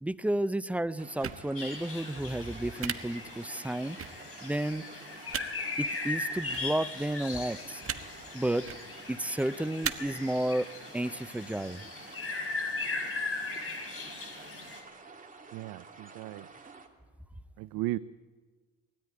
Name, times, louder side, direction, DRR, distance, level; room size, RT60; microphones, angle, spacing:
voice 1, 0.0-4.9 5.2-5.3 5.8-7.8 8.3-8.7 9.1-11.8, right 1 dB, 5° right, 16 dB, 0.5 m, -32 dB
sound 1, 1.0-16.9, right 4 dB, 25° right, 2.7 m, -51 dB
sound 2, 1.2-1.4 2.8-2.9 4.0-4.1 5.3-5.4 6.5-6.6 7.8-8.0 8.6-8.8 9.8-9.9, right 8 dB, 40° right, 1.3 m, -34 dB
sound 3, 1.6-14.8, left 3 dB, 40° left, 5.0 m, -38 dB
voice 2, 15.5-16.5 17.6-18.0, right 17 dB, 70° right, 13 dB, 0.6 m, -35 dB
19.5 x 13.5 x 9.8 m, 1.4 s
supercardioid pair, 80°, 34 cm